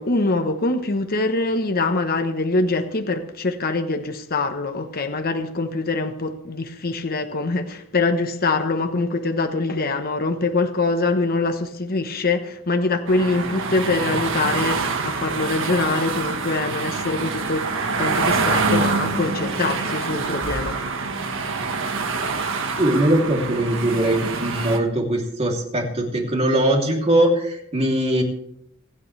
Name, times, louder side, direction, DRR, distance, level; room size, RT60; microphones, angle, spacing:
voice 1, 0.0-17.7 18.0-20.8, left 3 dB, 45° left, 1.1 m, -24 dB
sound 1, 13.1-24.8, right 4 dB, 65° right, 1.5 m, -25 dB
voice 2, 22.8-28.2, right 1 dB, 30° right, 3.0 m, -21 dB
27.5 x 9.8 x 3.3 m
head